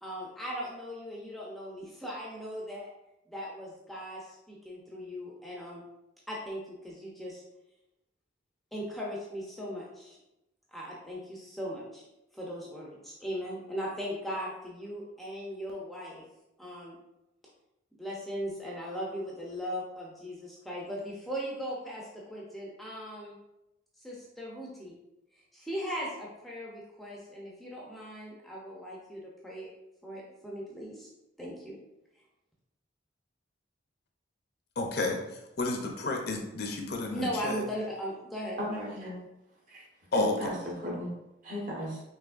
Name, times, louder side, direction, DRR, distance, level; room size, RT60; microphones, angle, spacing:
voice 1, 0.0-2.9 3.3-5.8 6.3-7.4 8.7-10.2 10.7-12.1 12.3-16.2 16.6-17.0 18.0-23.4 24.0-24.9 25.5-29.7 30.0-31.1 31.4-31.8 37.1-38.6, equal, ahead, -4 dB, 0.6 m, -38 dB
voice 2, 34.8-35.2 35.6-37.6 40.1-40.3, left 2 dB, 55° left, 2 dB, 0.6 m, -31 dB
voice 3, 38.6-39.2 39.7-39.8 40.1-41.1 41.4-42.0, left 1 dB, 45° right, -3 dB, 1.2 m, -35 dB
5.7 x 3.1 x 2.5 m, 0.91 s
head